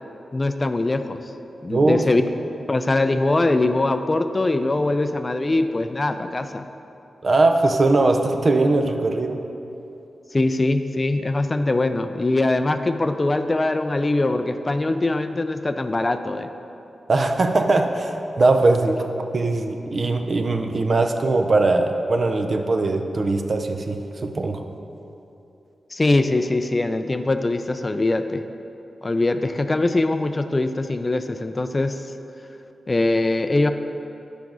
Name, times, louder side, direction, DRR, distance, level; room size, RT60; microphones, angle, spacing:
voice 1, 0.3-1.2 1.6-2.2 2.7-6.6 10.3-16.5 25.9-28.4 29.0-32.0 32.9-33.7, left 2 dB, 30° left, 9 dB, 0.3 m, -22 dB
voice 2, 1.7-2.0 7.2-9.4 17.1-19.0 19.3-24.0 24.2-24.6, right 2 dB, 50° right, 5 dB, 0.5 m, -20 dB
5.9 x 5.1 x 6.1 m, 2.8 s
cardioid pair, 75°, 0 cm